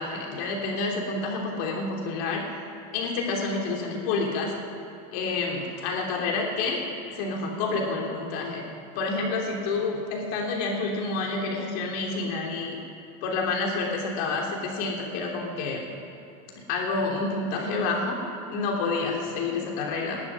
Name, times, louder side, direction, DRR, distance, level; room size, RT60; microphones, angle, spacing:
voice 1, 0.0-2.6 2.9-4.5 5.1-8.6 8.9-12.8 13.2-15.8 16.7-18.2 18.5-20.3, left 3 dB, 65° left, 0 dB, 3.1 m, -29 dB
12.5 x 9.7 x 9.3 m, 2.8 s
supercardioid pair, 130°, 20 cm